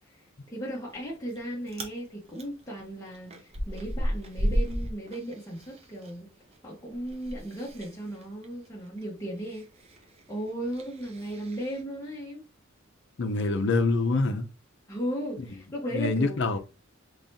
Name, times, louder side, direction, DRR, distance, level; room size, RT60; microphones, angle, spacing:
voice 1, 0.0-6.3 6.6-9.7 10.3-12.4 14.9-16.4, right 1 dB, 15° left, 1.0 m, -36 dB
Chewing mastication, 0.9-1.4 1.6-2.0 2.4-6.1 6.4-11.8, equal, 30° right, 0.7 m, -34 dB
voice 2, 13.2-14.4 15.9-16.6, left 3 dB, 60° left, 0.6 m, -25 dB
4.0 x 3.0 x 2.7 m
head